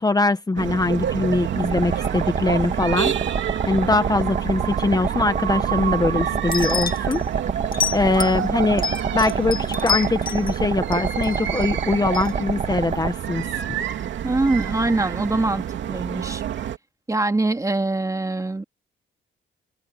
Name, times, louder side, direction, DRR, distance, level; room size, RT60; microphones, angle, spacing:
voice 1, 0.0-3.1 3.7-7.2 7.9-8.9 9.1-13.6, left 3 dB, 20° left, 1.3 m, -22 dB
sound 1, 0.6-16.8, right 10 dB, 70° right, 2.8 m, -28 dB
sound 2, 1.6-13.1, right 5 dB, 35° right, 1.8 m, -28 dB
sound 3, 6.5-7.2 7.7-8.4 8.8-10.5 10.9-11.7 12.1-12.3, left 7 dB, 45° left, 2.3 m, -27 dB
voice 2, 14.2-16.4 17.1-18.6, right 2 dB, 15° right, 2.1 m, -23 dB
cardioid pair, 90°, 20 cm